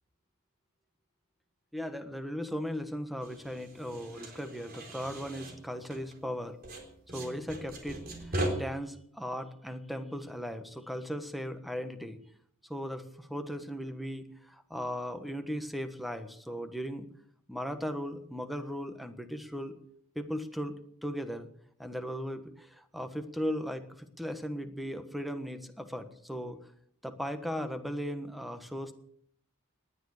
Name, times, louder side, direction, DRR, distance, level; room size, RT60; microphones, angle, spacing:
voice 1, 1.7-6.6 7.1-12.2 12.6-17.1 17.5-19.8 20.1-20.7 21.0-21.5 21.8-26.6 27.0-28.9, equal, ahead, 8 dB, 1.4 m, -37 dB
sound 1, 3.2-6.4 6.6-8.5, right 1 dB, 45° right, 3.9 m, -39 dB
19.5 x 11.0 x 6.6 m, 0.66 s
head